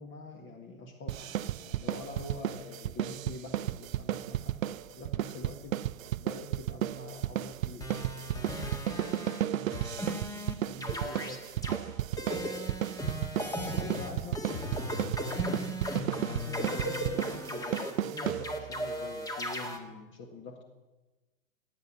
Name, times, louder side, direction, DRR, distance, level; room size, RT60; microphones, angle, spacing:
voice 1, 0.0-8.0 9.5-9.9 10.7-11.4 13.7-14.7 16.3-20.6, left 2 dB, 30° left, 3 dB, 1.8 m, -45 dB
sound 1, 1.1-18.9, right 12 dB, 80° right, 0.5 m, -34 dB
sound 2, 7.8-9.4 9.7-10.5 10.8-11.8 12.2-19.8, equal, 10° left, 1.6 m, -36 dB
voice 2, 8.3-10.5 13.6-13.9 14.3-14.9 15.3-15.6, right 5 dB, 20° right, 4 dB, 3.3 m, -52 dB
18.0 x 8.6 x 8.5 m, 1.1 s
figure-of-eight pair, 110°, 41 cm